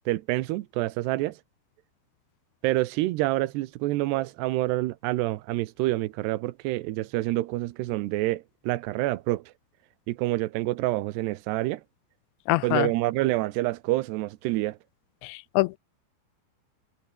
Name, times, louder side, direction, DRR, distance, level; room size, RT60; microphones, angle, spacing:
voice 1, 0.1-1.4 2.6-9.4 10.1-11.8 12.6-14.8, right 18 dB, 80° right, 2.9 m, -27 dB
voice 2, 12.5-12.9 15.2-15.8, left 21 dB, 85° left, 2.9 m, -25 dB
omnidirectional pair, 5.1 m